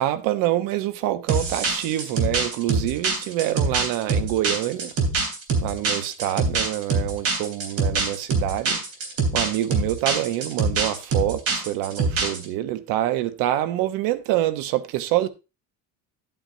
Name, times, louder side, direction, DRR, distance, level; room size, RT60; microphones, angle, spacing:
voice 1, 0.0-4.9 5.6-8.8 9.3-15.3, right 14 dB, 80° right, 1.0 m, -26 dB
sound 1, 1.3-12.4, right 3 dB, 45° right, 3.3 m, -24 dB
11.5 x 8.8 x 2.7 m
cardioid pair, 150°, 34 cm